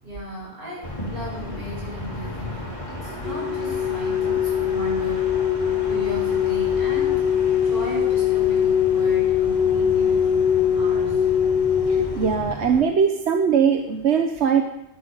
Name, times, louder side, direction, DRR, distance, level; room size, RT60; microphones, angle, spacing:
voice 1, 0.0-5.3 5.9-7.3 7.6-11.2, equal, 60° right, -6 dB, 8.3 m, -36 dB
sound 1, 0.8-12.8, left 1 dB, 30° left, 3.0 m, -35 dB
sound 2, 3.2-12.3, left 8 dB, 65° left, 2.2 m, -22 dB
voice 2, 11.9-14.6, right 7 dB, 90° right, 5 dB, 1.2 m, -21 dB
12.0 x 10.5 x 9.0 m, 0.89 s
omnidirectional pair, 1.1 m